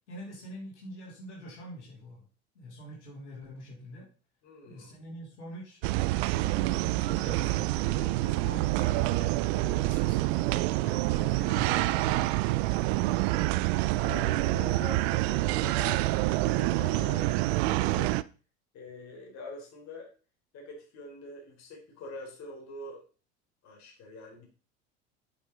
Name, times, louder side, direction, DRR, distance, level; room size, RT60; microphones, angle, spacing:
voice 1, 0.1-2.2 2.5-4.1 4.7-9.3 9.8-12.6, equal, 85° left, -3 dB, 3.2 m, -45 dB
voice 2, 4.4-5.0 9.6-10.0 12.5-13.3 13.9-18.2 18.7-20.1 20.5-23.0 23.6-24.5, left 2 dB, 50° left, 1 dB, 3.6 m, -45 dB
sound 1, 5.8-18.2, right 18 dB, 65° right, 0.5 m, -27 dB
8.1 x 6.2 x 3.8 m, 0.36 s
hypercardioid pair, 80°, 34 cm